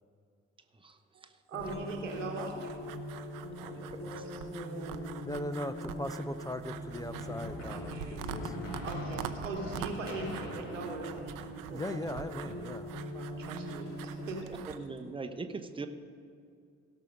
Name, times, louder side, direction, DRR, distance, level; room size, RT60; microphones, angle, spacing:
sound 1, 1.5-14.4, equal, 35° left, 2.3 m, -42 dB
voice 1, 1.5-2.7 4.0-5.2 7.7-8.2 8.8-12.0 13.1-14.6, right 3 dB, 85° right, 1 dB, 1.4 m, -41 dB
sound 2, 1.6-14.8, right 10 dB, 60° right, 0.7 m, -46 dB
voice 2, 3.6-4.0 14.7-15.9, right 4 dB, 15° right, 7 dB, 0.9 m, -40 dB
voice 3, 5.2-8.6 11.7-12.9, left 1 dB, 10° left, 10 dB, 0.5 m, -39 dB
sound 3, 6.6-12.7, left 2 dB, 75° left, 1.5 m, -45 dB
17.0 x 6.3 x 5.3 m, 2.4 s
figure-of-eight pair, 50°, 37 cm